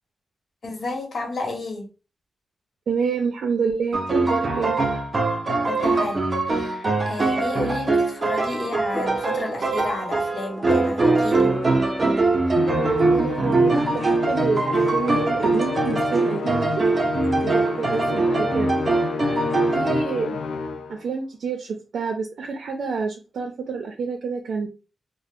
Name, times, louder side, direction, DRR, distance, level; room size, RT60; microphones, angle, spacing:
voice 1, 0.6-1.9 5.6-11.5, left 2 dB, 55° left, 1 dB, 1.0 m, -31 dB
voice 2, 2.9-4.8 13.1-16.8 17.4-18.7 19.7-20.4 20.9-24.7, right 5 dB, 80° right, 3 dB, 0.5 m, -28 dB
sound 1, 3.9-20.0, right 3 dB, 35° right, 0.6 m, -22 dB
sound 2, 8.9-12.7 13.8-14.1 14.8-14.9 15.2-15.3 15.6-15.7 16.0-16.2 17.9-18.0, right 1 dB, 15° left, 0.6 m, -29 dB
Musical instrument, 12.6-21.0, left 4 dB, 90° left, 0.3 m, -29 dB
2.4 x 2.0 x 3.5 m, 0.33 s
cardioid pair, 95°, 0 cm